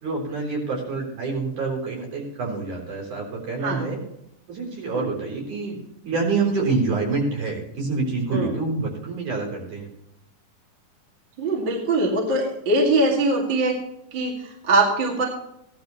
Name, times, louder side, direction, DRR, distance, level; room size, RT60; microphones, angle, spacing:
voice 1, 0.0-4.0 4.5-5.8 6.1-9.9, right 3 dB, 65° right, -1 dB, 5.1 m, -27 dB
voice 2, 11.4-13.8 14.1-15.3, right 2 dB, 40° right, -2 dB, 2.6 m, -22 dB
16.5 x 11.5 x 3.1 m, 0.79 s
omnidirectional pair, 3.8 m